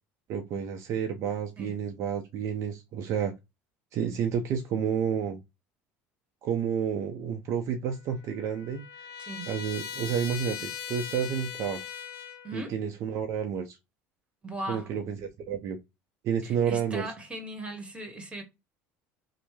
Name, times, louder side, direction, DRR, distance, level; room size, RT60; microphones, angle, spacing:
voice 1, 0.3-3.3 3.9-5.4 6.4-8.8 9.5-11.8 12.5-13.8 14.7-15.8 16.2-17.1, right 7 dB, 55° right, 0.5 m, -30 dB
Trumpet, 7.9-12.6, left 8 dB, 70° left, 0.7 m, -40 dB
voice 2, 9.2-9.5 12.4-12.8 14.4-14.9 16.4-18.4, right 1 dB, 20° right, 1.2 m, -38 dB
3.1 x 2.1 x 3.1 m
supercardioid pair, 90°, 6 cm